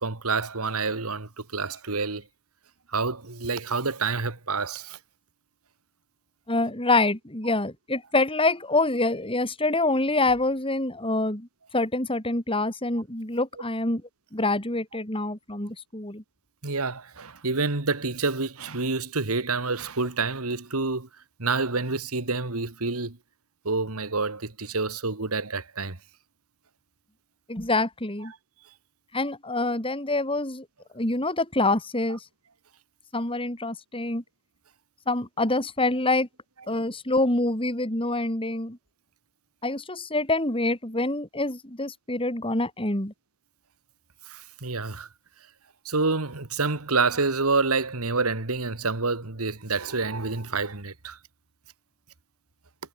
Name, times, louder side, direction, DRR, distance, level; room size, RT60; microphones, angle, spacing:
voice 1, 0.0-2.2 2.9-5.0 16.6-21.1 21.4-23.2 23.6-26.0 44.3-45.1 45.9-51.2, right 4 dB, 75° right, 2.0 m, -28 dB
voice 2, 6.5-11.5 11.7-14.0 14.3-16.2 27.5-28.3 29.1-30.6 30.9-32.2 33.1-34.2 35.1-36.3 36.7-38.8 39.6-43.1, left 2 dB, 25° left, 4.2 m, -26 dB
head